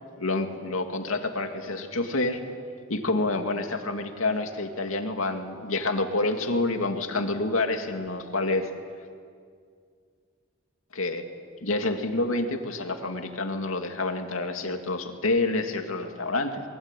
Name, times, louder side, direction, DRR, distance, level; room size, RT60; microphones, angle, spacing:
voice 1, 0.2-2.4 2.9-8.7 10.9-11.2 11.6-16.6, left 2 dB, 85° left, 5 dB, 2.5 m, -28 dB
28.0 x 22.5 x 9.2 m, 2.2 s
head